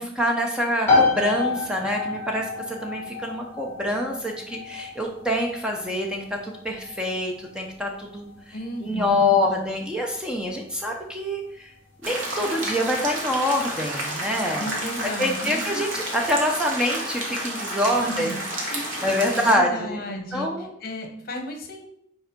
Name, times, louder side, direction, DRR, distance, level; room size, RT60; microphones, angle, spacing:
voice 1, 0.0-8.6 8.8-11.7 12.0-14.7 15.0-18.4 18.6-20.0 20.3-20.7, left 1 dB, 5° right, 0 dB, 0.7 m, -26 dB
sound 1, 0.9-15.4, left 3 dB, 10° left, 2.6 m, -30 dB
voice 2, 8.5-9.3 14.6-15.8 18.0-18.4 18.7-21.9, equal, 50° left, 4 dB, 1.1 m, -34 dB
sound 2, 12.0-19.5, right 1 dB, 85° right, 1.7 m, -31 dB
5.3 x 4.5 x 5.2 m, 0.69 s
head